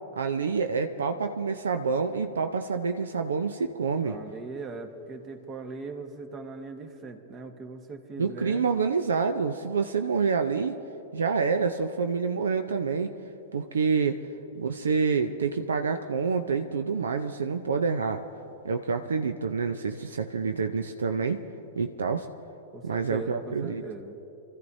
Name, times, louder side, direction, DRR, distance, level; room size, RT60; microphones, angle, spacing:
voice 1, 0.2-4.2 8.2-10.8 11.1-13.1 13.5-14.2 14.5-18.3 18.6-21.4 21.7-22.3 22.8-23.8, right 5 dB, 75° right, 7 dB, 0.6 m, -27 dB
voice 2, 4.0-8.7 22.7-24.2, right 3 dB, 30° right, 7 dB, 1.3 m, -40 dB
28.0 x 14.0 x 2.7 m, 2.9 s
figure-of-eight pair, 105°, 0 cm